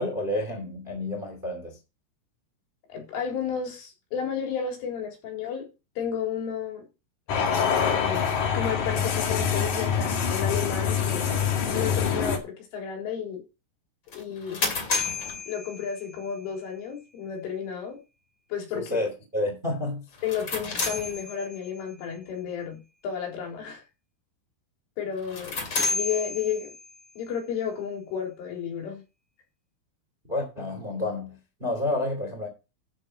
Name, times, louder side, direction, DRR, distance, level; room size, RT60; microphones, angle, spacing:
voice 1, 0.0-1.8 18.7-20.0 30.3-32.5, left 1 dB, 15° right, 1.7 m, -30 dB
voice 2, 2.9-5.7 6.0-6.8 7.6-11.2 11.7-13.4 14.1-14.8 15.5-18.0 18.5-18.9 20.2-23.8 25.0-26.7 27.2-29.0, left 7 dB, 75° left, 6.3 m, -32 dB
sound 1, 7.3-12.4, left 7 dB, 50° left, 2.5 m, -25 dB
sound 2, 14.1-16.4 20.1-21.8 25.2-27.0, left 3 dB, 35° left, 2.2 m, -31 dB
11.5 x 7.7 x 4.7 m
omnidirectional pair, 5.7 m